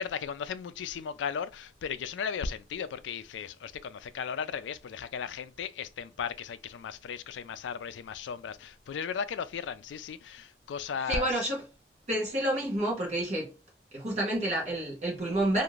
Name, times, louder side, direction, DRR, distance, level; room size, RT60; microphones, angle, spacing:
voice 1, 0.0-11.5, left 6 dB, 85° left, 0.3 m, -36 dB
voice 2, 11.1-11.6 12.1-13.5 13.9-15.6, right 1 dB, 40° right, 0.9 m, -29 dB
2.5 x 2.4 x 3.0 m
head